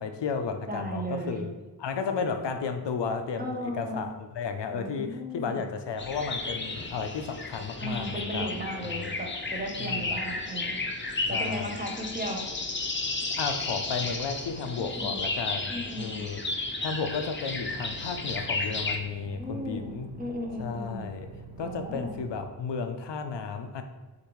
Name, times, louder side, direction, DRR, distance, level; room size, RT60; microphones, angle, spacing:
voice 1, 0.0-1.5 1.8-8.5 9.0-9.1 9.8-10.1 11.3-11.7 13.4-16.4 16.8-20.1 20.6-21.3 21.6-23.8, left 5 dB, 90° left, 6 dB, 0.5 m, -33 dB
voice 2, 0.7-1.5 3.4-4.1 4.7-5.7 7.8-10.8 11.3-12.4 14.8-15.2 15.7-16.2 19.2-21.1 21.6-22.2, equal, 20° right, 1 dB, 0.8 m, -36 dB
sound 1, 6.0-19.0, left 3 dB, 30° left, 0.6 m, -33 dB
sound 2, 17.5-22.5, right 4 dB, 80° right, 0.8 m, -46 dB
6.5 x 2.6 x 3.0 m, 1.2 s
wide cardioid pair, 60°, 41 cm